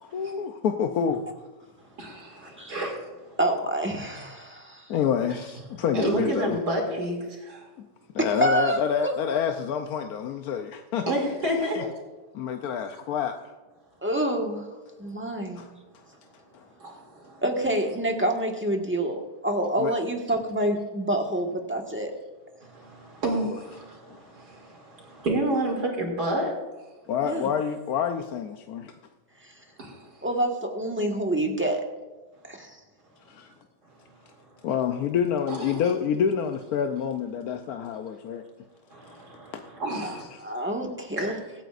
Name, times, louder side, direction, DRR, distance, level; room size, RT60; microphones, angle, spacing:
voice 1, 0.1-1.2 4.9-6.6 8.1-11.1 11.7-11.8 12.3-13.3 15.6-15.7 19.8-19.9 27.1-28.9 34.6-38.4 39.5-39.6, left 7 dB, 65° left, 5 dB, 1.1 m, -27 dB
voice 2, 2.0-2.9 5.3-5.4 5.9-7.2 7.5-7.6 11.1-11.9 16.8-16.9 22.7-24.7 25.0-26.5 29.8-29.9 35.5-35.9 38.9-40.2 41.2-41.4, right 1 dB, 70° right, 0 dB, 3.3 m, -29 dB
voice 3, 3.4-4.9 8.2-9.4 14.0-14.6 15.0-15.6 17.4-22.1 27.2-27.5 30.2-31.8 32.5-32.8 40.0-40.1 40.4-41.4, right 1 dB, 5° right, 2 dB, 1.4 m, -27 dB
24.5 x 9.1 x 2.5 m, 1.2 s
omnidirectional pair, 1.8 m